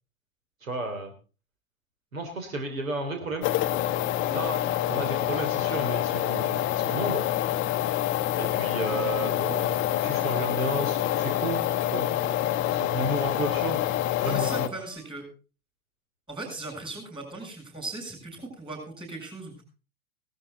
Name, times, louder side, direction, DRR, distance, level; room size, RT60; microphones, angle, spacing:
voice 1, 0.6-1.1 2.1-3.5 4.3-7.2 8.4-12.1 12.7-13.8 14.2-14.7, right 2 dB, 70° right, 5 dB, 3.3 m, -33 dB
sound 1, 3.4-14.7, left 13 dB, 30° left, 0.8 m, -27 dB
Bowed string instrument, 10.0-15.0, right 2 dB, 45° right, 6.6 m, -46 dB
voice 2, 14.2-15.2 16.3-19.6, right 2 dB, 10° right, 3 dB, 7.5 m, -38 dB
17.5 x 13.0 x 4.0 m, 0.34 s
figure-of-eight pair, 95°, 41 cm